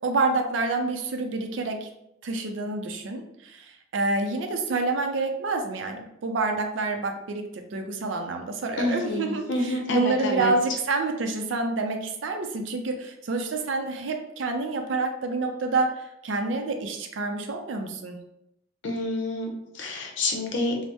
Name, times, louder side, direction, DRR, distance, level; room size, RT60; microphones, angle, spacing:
voice 1, 0.0-1.9 2.2-15.9 16.2-18.2, right 3 dB, 80° right, 4 dB, 0.4 m, -28 dB
voice 2, 8.8-10.5 18.8-20.8, left 1 dB, 75° left, 2 dB, 0.6 m, -28 dB
2.7 x 2.0 x 3.3 m, 0.82 s
head